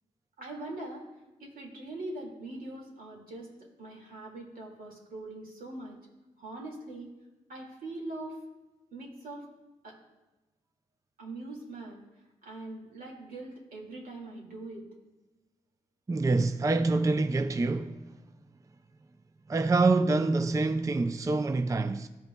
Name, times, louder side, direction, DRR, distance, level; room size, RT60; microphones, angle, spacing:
voice 1, 0.4-1.0 1.4-3.5 3.8-6.0 6.4-7.1 7.5-8.4 8.9-9.4 9.8-9.9 11.2-12.0 12.4-14.8, right 2 dB, 75° right, 2.1 m, -42 dB
voice 2, 16.1-18.1 19.5-22.1, right 3 dB, 20° right, 0.4 m, -26 dB
15.0 x 5.3 x 2.2 m
cardioid pair, 50°, 15 cm